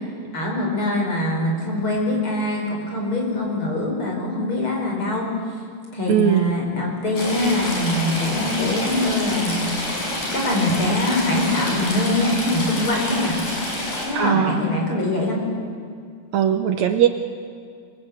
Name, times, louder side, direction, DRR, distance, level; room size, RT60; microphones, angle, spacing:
voice 1, 0.3-5.3 5.9-9.8 10.3-13.5 14.0-15.4, left 1 dB, 40° left, -1 dB, 6.1 m, -23 dB
voice 2, 6.1-6.5 14.2-14.6 16.3-17.1, right 9 dB, 70° right, 7 dB, 2.0 m, -19 dB
Stream / Trickle dribble, 7.2-14.1, left 1 dB, 85° left, 7.7 m, -27 dB
25.5 x 22.5 x 8.1 m, 2.2 s
omnidirectional pair, 3.7 m